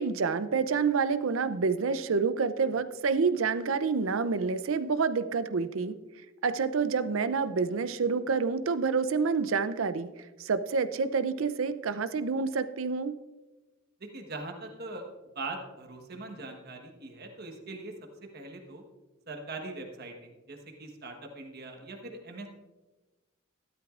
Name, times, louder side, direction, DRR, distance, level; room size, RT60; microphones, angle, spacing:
voice 1, 0.0-6.0 6.4-10.1 10.4-13.1, right 5 dB, 80° right, 13 dB, 0.6 m, -28 dB
voice 2, 14.0-15.0 15.3-17.9 18.2-18.8 19.3-22.5, right 2 dB, 50° right, 3 dB, 1.3 m, -41 dB
13.5 x 12.0 x 2.5 m, 1.2 s
head